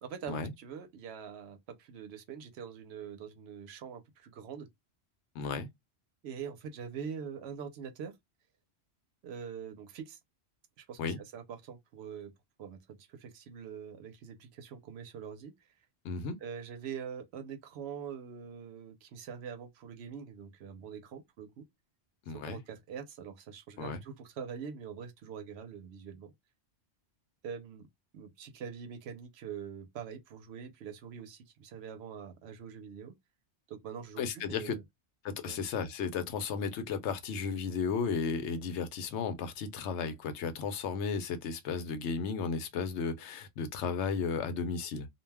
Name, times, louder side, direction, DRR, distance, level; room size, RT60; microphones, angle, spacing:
voice 1, 0.0-4.7 6.2-8.2 9.2-10.2 10.8-12.3 12.6-15.5 16.4-21.7 22.3-26.3 27.4-27.9 28.1-33.1 33.7-34.8 35.4-35.6, right 7 dB, 75° right, 0.8 m, -44 dB
voice 2, 5.3-5.7 11.0-11.2 16.0-16.4 22.3-22.6 23.8-24.0 34.2-34.8 35.2-45.1, left 5 dB, 85° left, 0.9 m, -34 dB
2.3 x 2.2 x 3.2 m
omnidirectional pair, 1.1 m